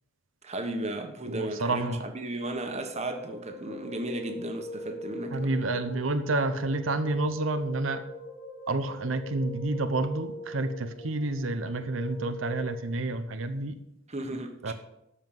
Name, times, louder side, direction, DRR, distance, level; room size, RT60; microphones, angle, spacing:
voice 1, 0.4-5.6 14.1-14.7, right 1 dB, 35° right, 1.3 m, -35 dB
voice 2, 1.3-2.1 5.3-8.0 8.7-13.8 14.6-14.7, right 2 dB, 90° right, 0.8 m, -29 dB
sound 1, 2.5-12.8, left 1 dB, 75° left, 2.9 m, -42 dB
13.0 x 5.7 x 7.5 m
head